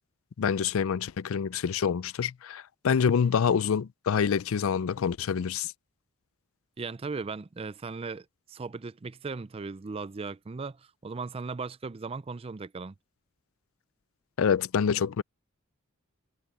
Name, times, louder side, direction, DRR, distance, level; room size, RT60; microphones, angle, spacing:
voice 1, 0.4-5.7 14.4-15.2, left 7 dB, 75° left, 0.4 m, -26 dB
voice 2, 6.8-10.8 11.0-12.9, right 4 dB, 25° right, 0.4 m, -37 dB
head